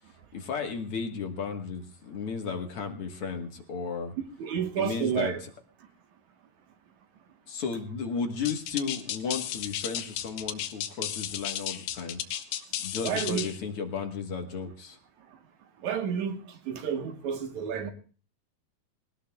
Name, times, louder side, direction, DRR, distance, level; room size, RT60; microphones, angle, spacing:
voice 1, 0.3-4.1 4.8-5.5 7.5-12.2 12.8-15.0, left 5 dB, 55° left, 1.7 m, -34 dB
voice 2, 4.4-5.4 13.0-13.5 15.8-17.9, right 8 dB, 65° right, 2.3 m, -30 dB
sound 1, 8.5-13.6, left 11 dB, 70° left, 2.4 m, -34 dB
20.0 x 18.5 x 2.3 m
omnidirectional pair, 4.2 m